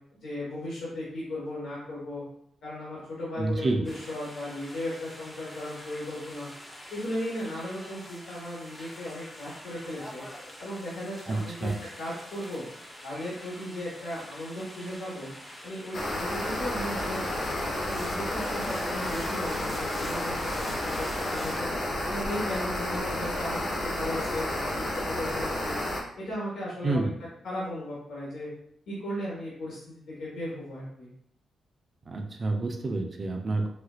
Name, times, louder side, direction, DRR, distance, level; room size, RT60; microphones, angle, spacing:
voice 1, 0.1-2.2 2.6-6.5 6.9-10.2 10.6-11.7 12.0-12.6 13.0-15.3 15.6-21.7 22.1-25.8 26.2-27.1 27.4-28.5 28.9-31.1, left 1 dB, 80° left, -7 dB, 1.2 m, -36 dB
voice 2, 3.4-3.8 11.3-11.8 26.8-27.1 32.1-33.7, right 2 dB, 35° right, 3 dB, 0.5 m, -28 dB
sound 1, 3.8-21.6, equal, 10° left, 0.5 m, -46 dB
sound 2, 15.9-26.0, left 1 dB, 50° left, 0.8 m, -31 dB
4.3 x 2.5 x 2.4 m, 0.71 s
wide cardioid pair, 135°, 0 cm